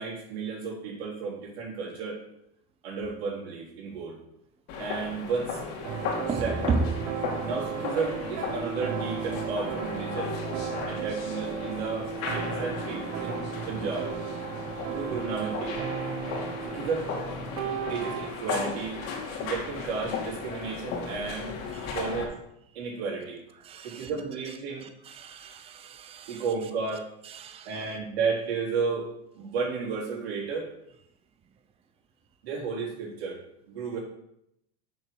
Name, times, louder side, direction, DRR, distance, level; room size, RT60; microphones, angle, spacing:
voice 1, 0.0-2.2 2.8-4.2 4.8-5.6 6.4-6.9 7.4-10.3 10.8-14.1 14.9-15.8 16.7-17.1 17.9-19.1 19.4-21.5 21.9-22.3 22.7-23.4 23.8-24.9 26.3-27.1 27.6-29.1 29.4-30.7 32.4-33.4 33.7-34.0, right 5 dB, 85° right, 3.9 m, -33 dB
sound 1, 4.7-22.2, left 5 dB, 55° left, 3.0 m, -36 dB
sound 2, 5.8-18.3, right 7 dB, 55° right, 1.2 m, -35 dB
voice 2, 6.3-6.9 21.7-21.9 23.6-24.1 24.8-26.4 27.2-27.8, right 4 dB, 20° right, 0.6 m, -33 dB
7.2 x 6.2 x 6.8 m
supercardioid pair, 135°, 31 cm